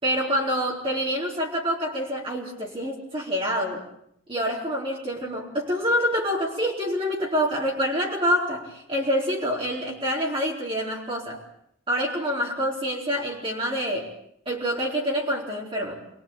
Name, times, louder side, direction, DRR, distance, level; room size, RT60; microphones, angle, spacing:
voice 1, 0.0-3.8 4.3-11.4 11.9-14.1 14.5-16.0, equal, 25° right, -4 dB, 4.3 m, -26 dB
28.5 x 22.5 x 8.9 m, 0.73 s
head